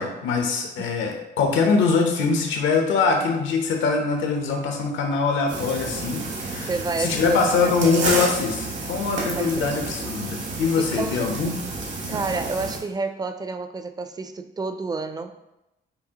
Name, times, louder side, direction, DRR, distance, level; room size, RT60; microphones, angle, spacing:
voice 1, 0.0-6.7 7.0-11.5, left 4 dB, 90° left, 3 dB, 0.8 m, -23 dB
sound 1, 5.5-12.8, right 3 dB, 75° right, 1.4 m, -30 dB
voice 2, 6.7-8.2 9.3-9.8 10.8-11.3 12.1-15.3, right 3 dB, 20° right, 8 dB, 0.4 m, -30 dB
6.8 x 2.4 x 2.8 m, 0.91 s
cardioid pair, 95°, 19 cm